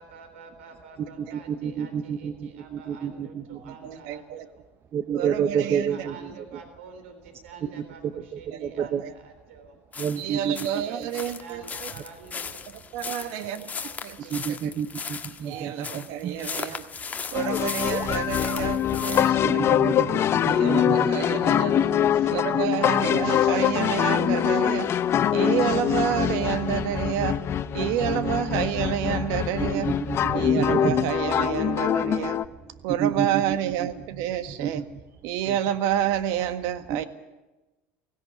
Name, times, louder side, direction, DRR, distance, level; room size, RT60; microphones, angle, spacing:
voice 1, 0.0-4.5 5.5-9.8 10.8-12.6 13.1-14.4, right 5 dB, 90° right, 7 dB, 3.7 m, -47 dB
voice 2, 1.2-3.7 4.9-6.3 8.3-9.0 10.0-10.6 11.0-11.1 14.3-16.4 19.4-21.1 25.8-25.9 28.2-28.3 29.7-31.1 33.0-33.9 34.6-34.8 35.5-35.6 36.9-37.0, right 8 dB, 40° right, 11 dB, 0.9 m, -29 dB
voice 3, 3.8-4.5 5.1-6.1 8.5-9.1 10.2-11.9 12.9-13.7 14.0-14.2 14.5-14.7 15.4-16.9 17.3-19.9 20.5-24.9 25.3-27.4 27.7-29.9 30.3-32.4 32.8-34.8 35.2-37.0, right 10 dB, 70° right, 10 dB, 1.6 m, -29 dB
sound 1, 9.9-19.3, left 6 dB, 25° left, 1.6 m, -37 dB
sound 2, 17.3-32.5, left 10 dB, 40° left, 0.8 m, -24 dB
sound 3, 17.4-33.4, right 1 dB, 15° right, 1.1 m, -41 dB
17.5 x 16.5 x 9.4 m, 1.0 s
supercardioid pair, 105°, 6 cm